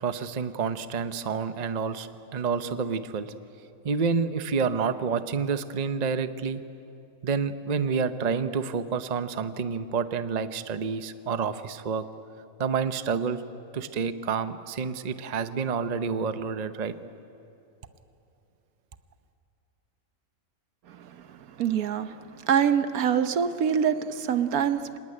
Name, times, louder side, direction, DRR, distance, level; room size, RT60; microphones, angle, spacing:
voice 1, 0.0-3.3 3.8-6.6 7.2-12.0 12.6-13.4 13.7-16.9, right 5 dB, 35° right, 11 dB, 0.7 m, -29 dB
voice 2, 21.6-22.2 22.5-25.0, right 8 dB, 75° right, 11 dB, 1.3 m, -25 dB
25.5 x 19.5 x 9.9 m, 2.7 s
omnidirectional pair, 1.6 m